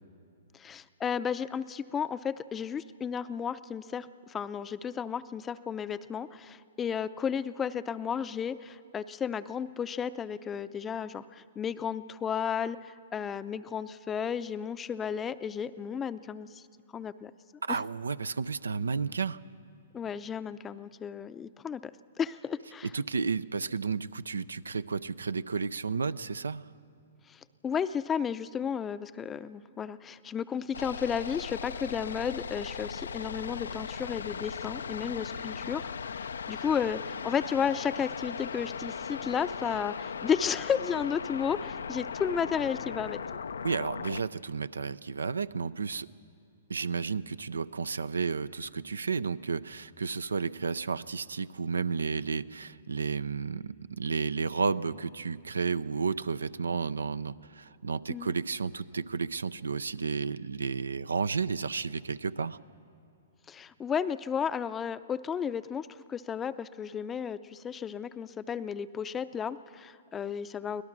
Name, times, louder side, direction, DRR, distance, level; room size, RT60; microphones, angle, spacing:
voice 1, 0.5-16.6 16.9-17.3 17.7-17.8 19.9-21.9 22.2-22.9 27.3-35.9 36.1-43.2 58.1-58.3 63.5-70.8, left 7 dB, 20° left, 14 dB, 0.5 m, -33 dB
voice 2, 17.6-19.4 22.9-26.6 43.6-46.1 46.7-62.6, right 5 dB, 90° right, 16 dB, 0.5 m, -32 dB
sound 1, 30.7-44.2, left 6 dB, 80° left, 0.5 m, -38 dB
24.5 x 17.5 x 6.0 m, 2.6 s
hypercardioid pair, 125°, 0 cm